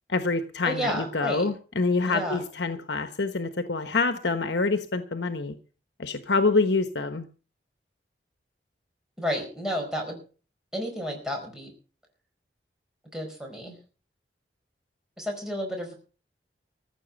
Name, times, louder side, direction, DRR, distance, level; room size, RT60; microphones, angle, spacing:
voice 1, 0.1-5.5 6.0-7.3, left 3 dB, 75° left, 8 dB, 1.1 m, -26 dB
voice 2, 0.6-1.5 2.1-2.4 9.2-10.2 10.7-11.7 13.1-13.8 15.2-15.9, equal, 5° right, 1 dB, 4.8 m, -31 dB
15.0 x 7.3 x 8.9 m, 0.38 s
head